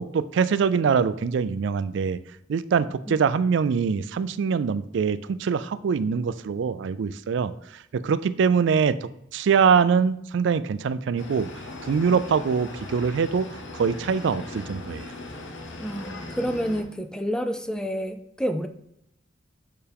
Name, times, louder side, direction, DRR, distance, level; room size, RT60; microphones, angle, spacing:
voice 1, 0.0-2.2 2.5-11.5 11.8-15.1, right 6 dB, 65° right, 15 dB, 0.3 m, -24 dB
sound 1, 11.2-16.8, left 2 dB, 80° left, 0.9 m, -39 dB
voice 2, 15.8-18.7, equal, 5° left, 8 dB, 0.4 m, -29 dB
6.6 x 5.6 x 3.5 m, 0.78 s
head